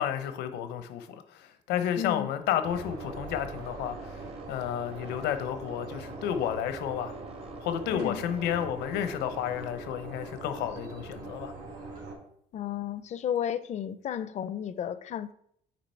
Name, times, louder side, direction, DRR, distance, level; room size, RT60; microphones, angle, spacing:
voice 1, 0.0-4.2 4.5-7.1 7.6-11.5, left 9 dB, 85° left, 0.7 m, -31 dB
voice 2, 2.0-2.3 7.9-8.2 12.5-15.3, left 9 dB, 45° left, 0.4 m, -33 dB
sound 1, 2.6-12.1, right 3 dB, 70° right, 2.4 m, -42 dB
sound 2, 3.3-9.9, right 3 dB, 35° right, 0.8 m, -50 dB
8.5 x 3.0 x 4.4 m
cardioid pair, 110°, 17 cm